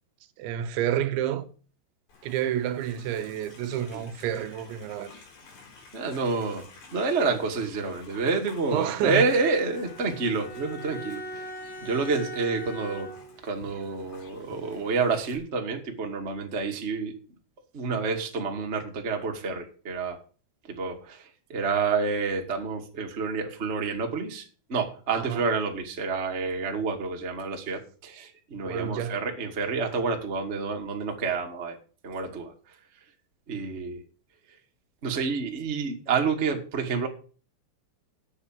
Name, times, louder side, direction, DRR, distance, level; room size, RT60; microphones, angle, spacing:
voice 1, 0.4-1.5 2.2-5.1 8.7-9.2 25.2-25.4 28.6-29.2, right 10 dB, 80° right, 3.3 m, -29 dB
Livestock farm animals working animals, 2.1-15.4, left 4 dB, 60° left, 6.2 m, -51 dB
voice 2, 5.9-11.4 11.8-13.1 13.4-17.1 17.7-20.2 20.6-24.4 24.7-31.8 32.0-32.5 33.5-34.0 35.0-37.1, right 4 dB, 35° right, 1.1 m, -28 dB
Bowed string instrument, 9.0-13.5, equal, 15° left, 4.9 m, -41 dB
9.6 x 7.4 x 8.9 m
omnidirectional pair, 5.3 m